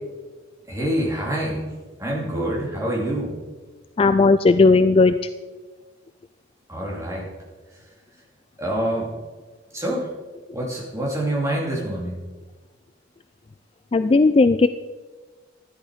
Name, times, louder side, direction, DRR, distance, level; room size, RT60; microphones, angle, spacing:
voice 1, 0.7-1.7 2.0-3.4 6.7-7.3 8.6-9.1 9.7-10.1 10.5-12.2, right 1 dB, 15° right, -4 dB, 3.2 m, -26 dB
voice 2, 4.0-5.2 13.9-14.7, left 3 dB, 30° left, 11 dB, 0.3 m, -15 dB
13.5 x 11.0 x 5.0 m, 1.3 s
head